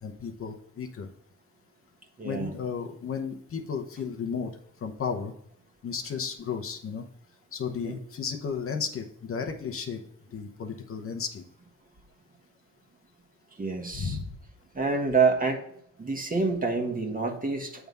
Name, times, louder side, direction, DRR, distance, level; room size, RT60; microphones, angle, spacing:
voice 1, 0.0-1.1 2.2-4.5 4.8-5.3 5.8-7.0 7.5-10.0 10.3-11.4 13.9-14.2, left 6 dB, 45° left, 4 dB, 0.9 m, -33 dB
voice 2, 2.2-2.5 7.8-8.0 13.6-14.2 14.7-15.6 16.0-17.9, right 4 dB, 30° right, 3 dB, 1.5 m, -27 dB
7.8 x 3.5 x 5.4 m, 0.71 s
cardioid pair, 90°, 30 cm